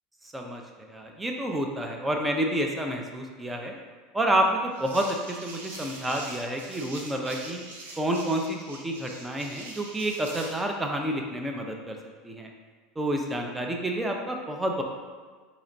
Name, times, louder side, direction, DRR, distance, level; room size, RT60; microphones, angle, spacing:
voice 1, 0.9-3.8 4.1-7.6 8.0-12.0 12.2-12.5 13.0-14.8, right 1 dB, 15° right, 2 dB, 0.5 m, -29 dB
sound 1, 4.7-10.6, right 2 dB, 85° right, 0.6 m, -43 dB
4.0 x 2.9 x 2.6 m, 1.5 s
hypercardioid pair, 85°, 0 cm